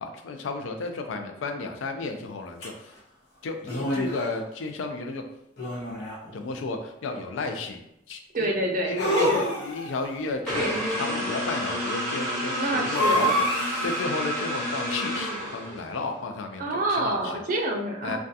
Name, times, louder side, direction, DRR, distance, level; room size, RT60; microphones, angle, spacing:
voice 1, 0.0-2.9 3.4-5.2 6.3-7.8 8.1-8.5 8.8-17.3 18.0-18.2, left 3 dB, 90° left, 5 dB, 0.4 m, -33 dB
sound 1, 2.6-2.7 3.6-4.4 5.6-6.3 9.0-10.0 12.9-14.0, equal, 50° left, 0.7 m, -27 dB
voice 2, 8.3-9.5 12.6-13.3 16.6-18.2, right 1 dB, 45° right, 1 dB, 0.4 m, -27 dB
sound 2, 10.5-16.0, equal, 5° left, 1.0 m, -29 dB
2.3 x 2.2 x 2.6 m, 0.81 s
head